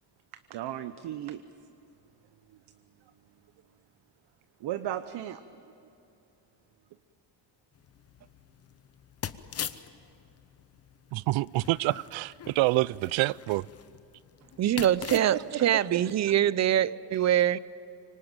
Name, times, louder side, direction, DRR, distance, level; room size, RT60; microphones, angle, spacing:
voice 1, 0.5-1.4 2.5-2.6 4.6-5.4 15.1-16.0, right 12 dB, 65° right, 0.9 m, -35 dB
sound 1, 7.8-15.5, left 9 dB, 35° left, 0.8 m, -43 dB
voice 2, 11.1-13.7, right 19 dB, 85° right, 0.6 m, -27 dB
voice 3, 14.6-17.6, right 11 dB, 40° right, 0.5 m, -24 dB
25.5 x 24.5 x 9.0 m
cardioid pair, 155°, 45 cm